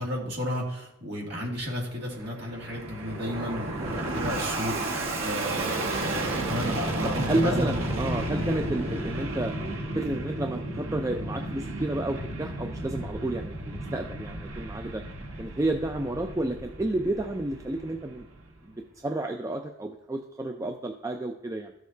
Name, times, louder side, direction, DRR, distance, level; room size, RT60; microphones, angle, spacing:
voice 1, 0.0-7.7, left 1 dB, 50° right, -2 dB, 2.1 m, -33 dB
Fixed-wing aircraft airplane, 1.9-18.5, right 1 dB, 65° right, 1.2 m, -33 dB
voice 2, 7.2-9.5 9.9-15.0 15.4-18.3 18.7-18.8 19.0-21.7, right 2 dB, 15° right, 4 dB, 0.3 m, -31 dB
13.0 x 6.4 x 2.7 m, 0.83 s
head